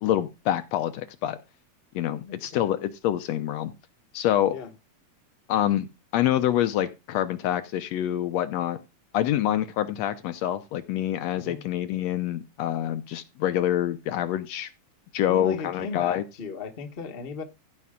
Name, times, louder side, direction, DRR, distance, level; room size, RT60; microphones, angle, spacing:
voice 1, 0.0-1.4 2.0-3.7 4.1-4.6 5.5-5.9 6.1-8.8 9.1-14.7 15.1-16.2, left 11 dB, 75° left, 1.8 m, -26 dB
voice 2, 2.2-2.6 4.5-4.7 11.3-11.6 15.3-17.4, left 5 dB, 35° left, 0.9 m, -36 dB
15.0 x 5.4 x 3.7 m
omnidirectional pair, 3.3 m